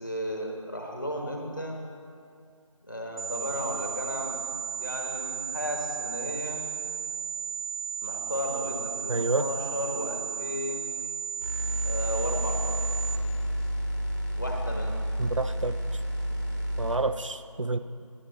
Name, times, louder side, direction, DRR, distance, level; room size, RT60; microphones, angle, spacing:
voice 1, 0.0-1.8 2.9-4.4 4.8-6.6 8.0-10.9 11.8-12.8 14.4-15.0, equal, 35° left, 0 dB, 1.2 m, -34 dB
sound 1, 3.2-13.2, right 7 dB, 85° right, 1.0 m, -34 dB
voice 2, 9.1-9.5 15.2-15.8 16.8-17.8, right 3 dB, 65° right, 11 dB, 0.5 m, -28 dB
sound 2, 11.4-17.0, equal, 30° right, 1.2 m, -30 dB
10.5 x 9.4 x 4.0 m, 2.3 s
figure-of-eight pair, 175°, 18 cm